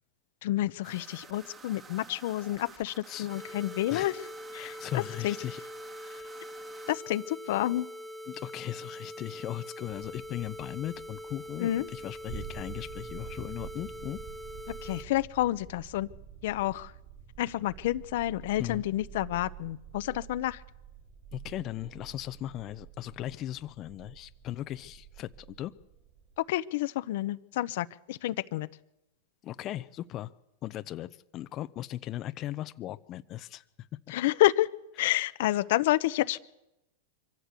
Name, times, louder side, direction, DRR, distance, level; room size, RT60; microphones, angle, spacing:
voice 1, 0.4-4.1 4.5-5.3 6.9-7.9 11.6-11.9 14.8-16.1 16.4-16.9 17.4-20.6 26.4-28.7 34.1-34.7 35.0-36.4, left 15 dB, 65° left, 13 dB, 0.8 m, -29 dB
sound 1, 0.8-6.9, right 5 dB, 25° right, 2.3 m, -51 dB
sound 2, 3.3-15.0, equal, 5° right, 1.4 m, -43 dB
voice 2, 4.5-5.6 6.0-6.3 8.3-14.2 18.6-18.8 21.3-25.7 29.4-30.3 30.6-33.9, left 13 dB, 35° left, 11 dB, 0.7 m, -38 dB
sound 3, 9.8-26.4, right 8 dB, 40° right, 4.6 m, -48 dB
24.5 x 15.0 x 8.4 m, 0.90 s
hypercardioid pair, 130°, 0 cm